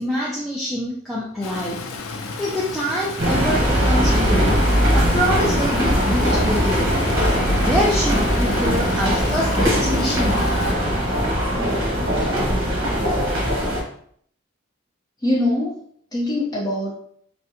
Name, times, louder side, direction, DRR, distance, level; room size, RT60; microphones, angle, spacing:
voice 1, 0.0-1.8 2.1-4.6 4.9-6.9 7.5-10.5, equal, ahead, -7 dB, 0.3 m, -25 dB
Stream, 1.4-10.7, left 4 dB, 85° left, 0.4 m, -33 dB
sound 1, 3.2-13.8, equal, 70° right, 1.0 m, -20 dB
voice 2, 15.2-15.8 16.1-16.9, left 1 dB, 20° left, -4 dB, 0.8 m, -23 dB
3.5 x 2.1 x 2.8 m, 0.63 s
head